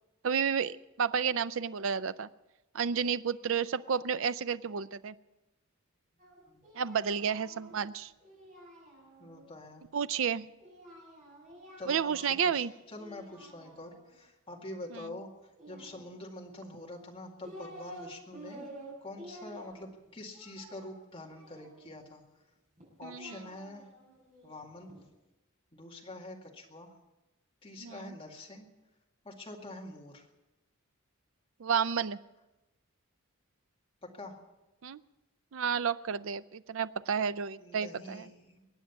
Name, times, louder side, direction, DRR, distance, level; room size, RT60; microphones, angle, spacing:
voice 1, 0.2-2.3 2.7-5.1 6.7-8.1 9.9-10.5 11.9-12.7 23.0-23.4 27.8-28.1 31.6-32.2 34.8-35.0 35.5-38.3, right 7 dB, 60° right, 15 dB, 0.5 m, -31 dB
Singing, 6.2-9.4 10.6-12.6 12.9-14.1 15.5-16.5 17.1-18.1 18.3-22.0 22.8-25.0, right 1 dB, 35° right, 6.2 m, -51 dB
voice 2, 9.2-9.8 11.8-15.3 15.7-18.7 19.0-22.2 23.0-23.9 24.4-24.9 25.7-26.9 27.6-28.7 29.2-30.3 34.0-34.4 37.6-38.7, left 1 dB, 25° left, 0 dB, 2.1 m, -46 dB
22.5 x 9.0 x 7.0 m, 1.0 s
head